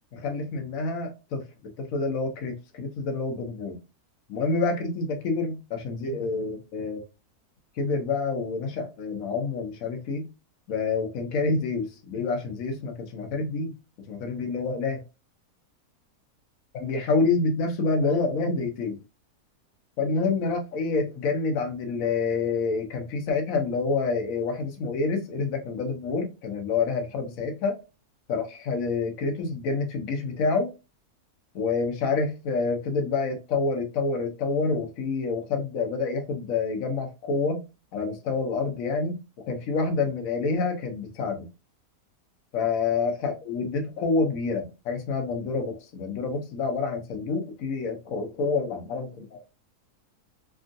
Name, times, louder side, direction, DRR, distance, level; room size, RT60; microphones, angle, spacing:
voice 1, 0.1-1.4 1.8-3.8 4.3-7.0 7.8-10.3 10.7-13.7 14.1-15.0 16.7-19.0 20.0-27.8 28.3-30.7 31.5-37.6 37.9-41.5 42.5-49.4, left 4 dB, 65° left, 1.1 m, -27 dB
3.4 x 2.4 x 2.5 m
omnidirectional pair, 1.6 m